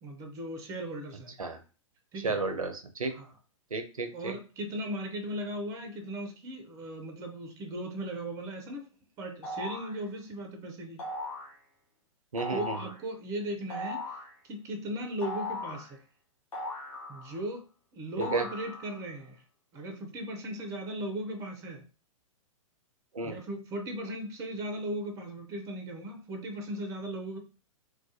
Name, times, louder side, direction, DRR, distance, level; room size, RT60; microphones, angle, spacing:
voice 1, 0.0-1.4 2.1-2.4 3.1-3.3 4.1-8.9 9.2-11.1 12.5-14.2 14.4-16.0 17.1-17.6 17.9-19.4 19.7-21.8 23.2-27.4, right 1 dB, 20° right, 4 dB, 0.4 m, -37 dB
voice 2, 2.2-3.1 3.7-4.3 12.3-12.8 18.2-18.5 23.1-23.3, right 3 dB, 85° right, 7 dB, 0.4 m, -32 dB
sound 1, 9.4-10.0 11.0-11.5 12.4-13.0 13.7-14.3 15.2-15.9 16.5-17.5 18.2-19.0, left 2 dB, 60° left, 1.0 m, -38 dB
2.3 x 2.1 x 2.6 m, 0.34 s
figure-of-eight pair, 110°, 17 cm